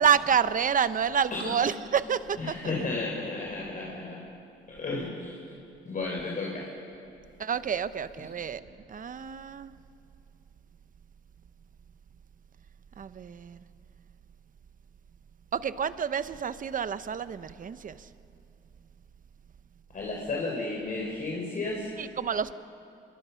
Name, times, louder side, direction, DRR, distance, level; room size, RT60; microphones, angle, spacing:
voice 1, 0.0-2.5 7.4-8.6 8.9-9.7 13.0-13.6 15.5-18.0 22.0-22.5, right 7 dB, 40° right, 13 dB, 0.9 m, -28 dB
voice 2, 2.3-4.2 4.7-5.4 5.9-6.7 19.9-21.9, left 3 dB, 45° left, -2 dB, 3.9 m, -33 dB
27.5 x 22.0 x 5.8 m, 2.6 s
cardioid pair, 90°, 20 cm